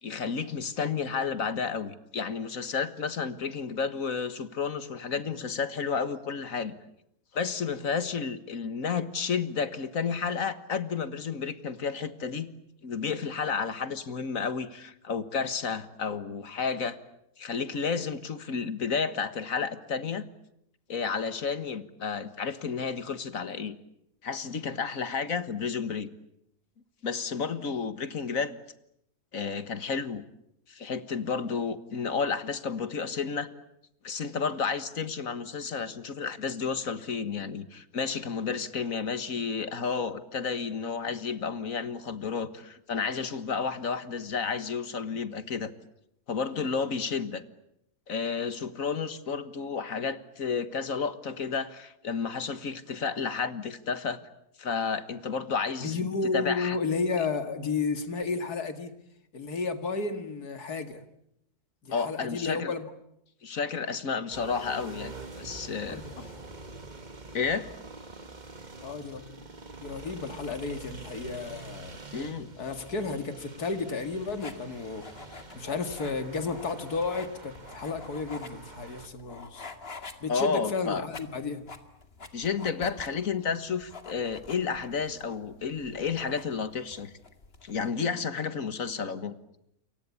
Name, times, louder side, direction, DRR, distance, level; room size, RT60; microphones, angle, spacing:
voice 1, 0.0-6.7 7.3-12.5 12.8-17.0 17.4-20.3 20.9-23.8 24.2-26.1 27.0-28.5 29.3-30.2 30.7-33.5 34.0-45.7 46.3-47.4 48.1-54.2 54.6-56.8 61.9-62.7 63.4-66.0 67.3-67.7 72.1-72.5 80.3-81.0 82.3-87.1 87.6-89.3, left 5 dB, 60° left, 13 dB, 1.9 m, -31 dB
voice 2, 55.8-58.9 59.3-61.0 61.8-62.9 65.9-66.4 68.8-69.4 69.8-72.0 72.6-75.1 75.5-79.7 80.2-81.7, left 4 dB, 85° left, 9 dB, 2.7 m, -32 dB
sound 1, 64.3-79.1, right 3 dB, 30° right, 1.8 m, -45 dB
sound 2, 74.0-87.9, left 3 dB, 40° left, 2.4 m, -47 dB
29.0 x 23.5 x 8.5 m, 0.76 s
omnidirectional pair, 1.6 m